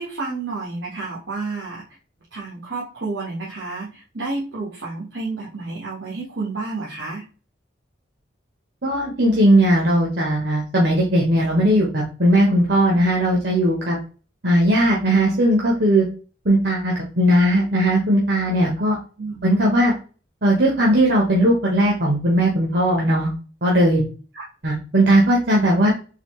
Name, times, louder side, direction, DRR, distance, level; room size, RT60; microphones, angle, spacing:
voice 1, 0.0-1.8 2.3-7.2 19.2-19.4 24.3-24.4, right 3 dB, 85° right, -5 dB, 1.4 m, -30 dB
voice 2, 8.8-14.0 14.4-16.0 16.4-19.0 19.4-19.9 20.4-23.3 23.6-24.0 24.6-25.9, right 1 dB, 60° right, -3 dB, 1.0 m, -18 dB
4.1 x 3.4 x 3.1 m, 0.35 s
head